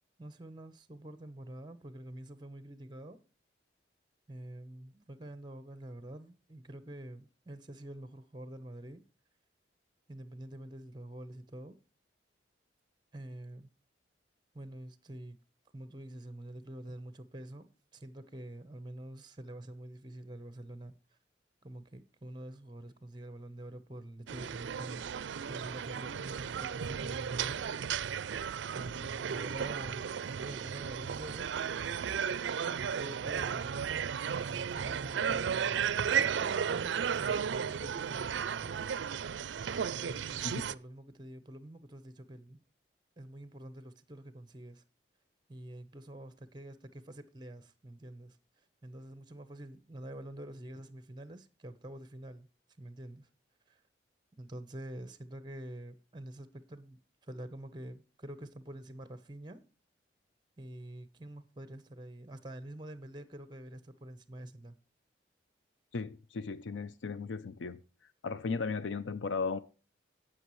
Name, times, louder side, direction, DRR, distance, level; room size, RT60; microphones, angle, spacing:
voice 1, 0.2-3.2 4.3-9.0 10.1-11.8 13.1-13.7 14.5-15.4 15.7-17.7 17.9-20.9 21.6-25.1 25.5-27.6 28.7-31.5 32.7-33.8 34.3-38.8 40.0-42.6 43.2-44.8 45.5-48.4 48.8-52.5 52.8-53.3 53.7-53.8 54.4-59.6 60.6-64.8, right 1 dB, 25° right, 0.9 m, -47 dB
sound 1, 24.3-40.7, right 7 dB, 75° right, 0.4 m, -34 dB
voice 2, 65.9-67.8 68.2-69.6, left 4 dB, 90° left, 0.5 m, -36 dB
18.0 x 6.2 x 3.1 m
head